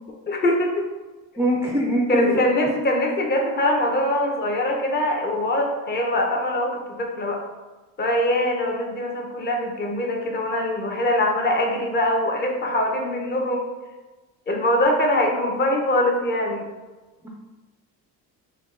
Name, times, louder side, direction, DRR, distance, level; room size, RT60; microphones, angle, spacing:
voice 1, 0.3-0.9 2.1-7.4 8.0-13.7 14.5-16.7, left 1 dB, 30° left, 1 dB, 0.8 m, -23 dB
voice 2, 1.4-2.3 17.2-17.3, equal, 10° right, -2 dB, 0.3 m, -22 dB
6.3 x 2.2 x 3.7 m, 1.2 s
cardioid pair, 175°, 34 cm